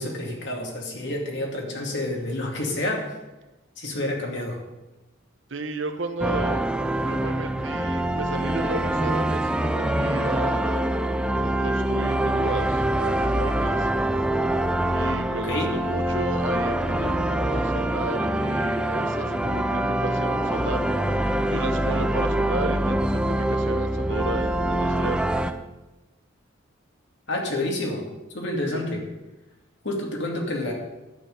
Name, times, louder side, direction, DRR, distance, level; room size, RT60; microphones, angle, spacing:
voice 1, 0.0-3.1 3.8-4.6 15.4-15.7 27.3-28.0 28.3-29.0 29.8-30.7, left 1 dB, 60° left, 0 dB, 2.5 m, -28 dB
voice 2, 5.5-6.6 7.1-10.9 11.4-13.9 14.9-20.9 21.3-25.2, right 3 dB, 65° right, 7 dB, 1.0 m, -33 dB
sound 1, 6.2-25.5, right 1 dB, 5° right, 0.5 m, -24 dB
11.0 x 9.1 x 5.3 m, 1.1 s
head